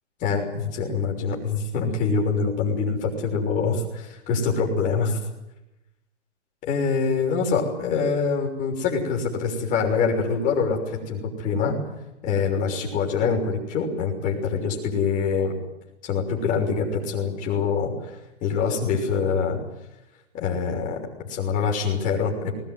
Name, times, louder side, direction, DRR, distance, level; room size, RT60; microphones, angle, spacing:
voice 1, 0.2-5.2 6.6-11.8 12.2-15.5 16.0-17.9 18.4-19.6 20.3-21.0 21.3-22.6, left 5 dB, 20° left, 0 dB, 6.1 m, -25 dB
22.0 x 19.5 x 9.4 m, 0.92 s
hypercardioid pair, 155°, 35 cm